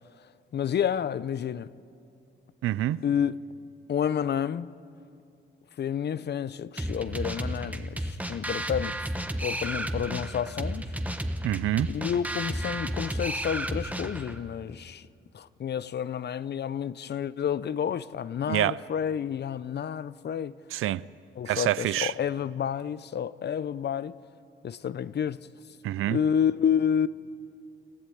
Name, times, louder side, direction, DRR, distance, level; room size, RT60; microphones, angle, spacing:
voice 1, 0.5-1.7 3.0-3.4 3.9-4.7 5.8-9.0 9.4-10.9 11.9-15.1 15.3-20.6 21.4-24.2 24.6-25.4 26.1-27.1, left 8 dB, 55° left, 0.6 m, -29 dB
voice 2, 2.6-3.0 11.4-11.9 18.5-18.8 20.7-21.0 21.5-22.1 25.8-26.2, right 14 dB, 80° right, 0.5 m, -26 dB
sound 1, 6.8-14.4, right 1 dB, 5° right, 1.3 m, -33 dB
28.0 x 13.0 x 9.1 m
cardioid pair, 75°, 21 cm